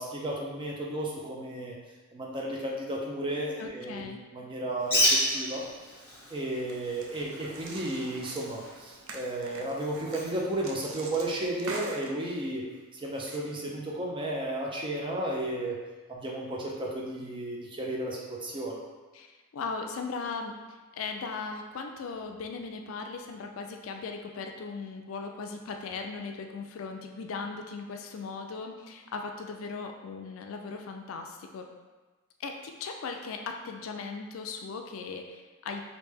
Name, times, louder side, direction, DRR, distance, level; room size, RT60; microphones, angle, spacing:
voice 1, 0.0-1.8 2.1-5.6 6.3-12.6 12.9-15.8 16.1-18.8, right 1 dB, 25° right, -2 dB, 0.5 m, -33 dB
voice 2, 3.6-4.2 19.1-31.7 32.4-35.8, left 4 dB, 75° left, 4 dB, 0.4 m, -38 dB
Bird, 4.8-11.5, equal, 10° left, 1.1 m, -33 dB
sound 1, 5.8-6.2 6.7-12.3 13.0-13.4, right 3 dB, 75° right, 0.5 m, -44 dB
3.2 x 2.6 x 3.4 m, 1.3 s
head